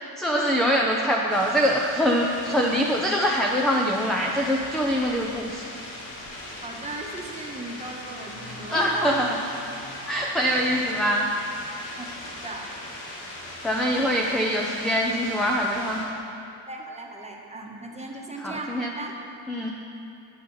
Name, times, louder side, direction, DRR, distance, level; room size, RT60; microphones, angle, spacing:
voice 1, 0.2-5.7 8.7-9.4 10.1-11.3 13.6-16.0 18.4-18.9 19.5-19.7, equal, ahead, -1 dB, 0.7 m, -24 dB
sound 1, 1.3-16.0, left 1 dB, 85° left, 2.2 m, -39 dB
voice 2, 6.6-9.2 10.2-10.4 10.6-10.8 11.9-12.7 16.7-19.3, right 2 dB, 15° right, 0 dB, 1.3 m, -37 dB
16.0 x 5.8 x 4.0 m, 2.6 s
cardioid pair, 80°, 46 cm